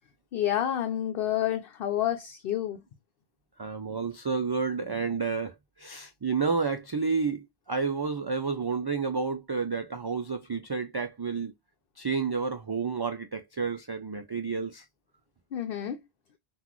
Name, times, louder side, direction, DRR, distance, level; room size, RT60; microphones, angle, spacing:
voice 1, 0.3-2.8 15.5-16.0, left 11 dB, 70° left, 0.8 m, -29 dB
voice 2, 3.6-11.5 12.0-14.8, right 5 dB, 45° right, 0.3 m, -30 dB
5.8 x 2.4 x 3.0 m
omnidirectional pair, 1.0 m